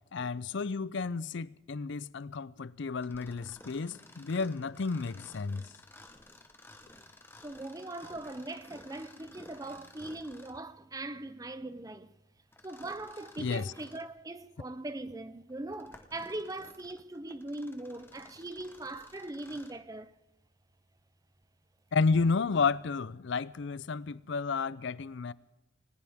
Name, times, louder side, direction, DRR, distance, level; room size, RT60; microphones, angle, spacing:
voice 1, 0.1-5.7 13.4-13.7 21.9-25.3, left 4 dB, 60° left, 0.5 m, -31 dB
Mechanisms, 3.0-10.7 12.5-14.1 14.7-14.8 15.5-19.9, left 2 dB, 10° left, 1.0 m, -54 dB
voice 2, 7.4-12.1 12.6-20.1, right 2 dB, 15° right, 0.6 m, -41 dB
20.0 x 19.5 x 3.6 m
head